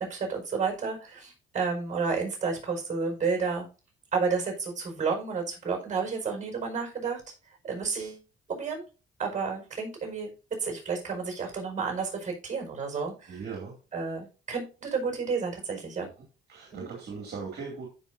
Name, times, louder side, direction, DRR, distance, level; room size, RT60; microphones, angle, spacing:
voice 1, 0.1-3.7 4.1-7.2 7.6-8.2 8.5-8.8 9.2-10.3 10.6-13.4 13.9-16.1 16.7-16.9, right 5 dB, 40° right, 2 dB, 5.0 m, -31 dB
voice 2, 13.3-13.7 16.5-17.9, right 5 dB, 55° right, 0 dB, 2.6 m, -38 dB
15.0 x 5.4 x 2.7 m, 0.33 s
cardioid pair, 90°, 20 cm